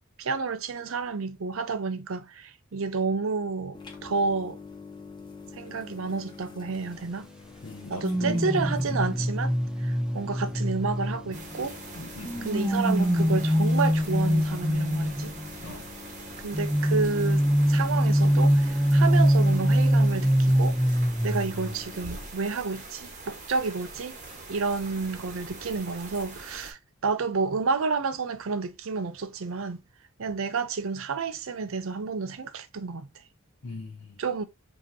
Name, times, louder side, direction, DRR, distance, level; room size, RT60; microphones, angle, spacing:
voice 1, 0.2-4.6 5.5-7.3 7.9-9.5 9.8-11.8 12.4-15.3 16.4-24.2 24.5-29.8 30.2-33.1 34.2-34.4, right 4 dB, 65° right, 0.5 m, -30 dB
sound 1, 3.7-22.3, left 4 dB, 20° left, 0.9 m, -46 dB
voice 2, 7.6-8.5 8.9-9.2 11.9-12.5 15.6-15.9 33.6-34.2, left 2 dB, 70° left, 0.8 m, -40 dB
sound 2, 8.0-11.6 12.2-15.5 16.5-21.7 22.0-22.3, equal, 5° right, 0.4 m, -23 dB
sound 3, 11.3-26.7, right 3 dB, 35° right, 1.1 m, -44 dB
5.2 x 2.8 x 2.7 m
head